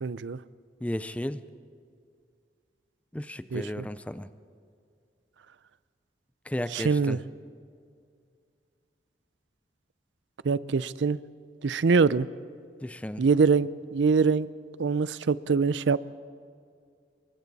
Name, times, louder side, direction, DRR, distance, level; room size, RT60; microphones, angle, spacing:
voice 1, 0.0-0.4 3.5-3.9 6.7-7.2 10.4-11.2 11.6-12.3 13.2-14.5 14.8-16.0, right 5 dB, 80° right, 17 dB, 0.5 m, -24 dB
voice 2, 0.8-1.4 3.1-4.3 6.5-7.2 12.8-13.2, left 1 dB, 5° left, 13 dB, 0.4 m, -34 dB
27.0 x 23.5 x 4.1 m, 2.3 s
head